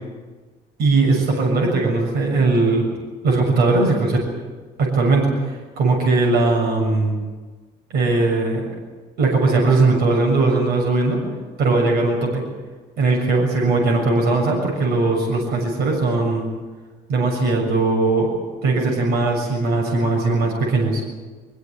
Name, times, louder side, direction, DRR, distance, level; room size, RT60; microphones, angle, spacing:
voice 1, 0.8-2.9 3.2-4.2 4.8-7.1 7.9-8.7 9.2-11.2 11.6-12.4 13.0-16.5 17.1-18.3 18.6-21.0, right 3 dB, 70° right, 0 dB, 6.9 m, -19 dB
23.5 x 16.0 x 9.4 m, 1.3 s
cardioid pair, 110°, 17 cm